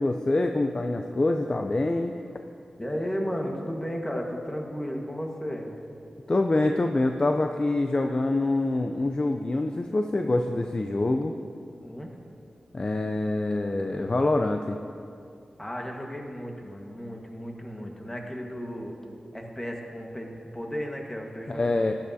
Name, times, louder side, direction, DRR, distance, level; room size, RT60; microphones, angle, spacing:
voice 1, 0.0-2.2 6.3-11.3 12.7-14.8 21.5-21.9, left 2 dB, 40° left, 5 dB, 0.5 m, -25 dB
voice 2, 2.8-5.7 11.8-12.2 15.6-19.0 19.3-21.7, equal, 20° left, 1 dB, 1.5 m, -34 dB
12.0 x 12.0 x 2.8 m, 2.5 s
cardioid pair, 50°, 2 cm